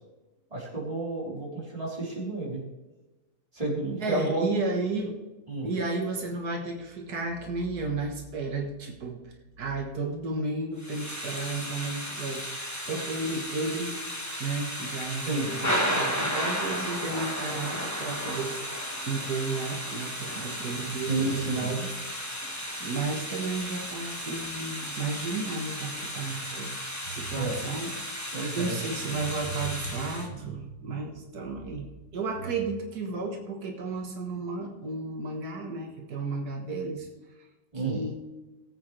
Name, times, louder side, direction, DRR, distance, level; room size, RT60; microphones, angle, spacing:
voice 1, 0.5-2.6 3.5-4.5 5.5-5.7 15.2-15.5 21.1-21.7 27.3-27.6 28.3-28.8 37.7-38.0, right 2 dB, 20° right, -5 dB, 3.9 m, -31 dB
voice 2, 4.0-5.2 5.6-13.9 14.4-18.5 18.9-26.8 27.1-37.1 37.4-37.5 37.7-38.2, right 3 dB, 85° right, 1 dB, 2.0 m, -33 dB
Thunder / Rain, 10.8-30.3, equal, 10° left, 1.5 m, -34 dB
19.5 x 8.2 x 3.3 m, 1.1 s
omnidirectional pair, 1.6 m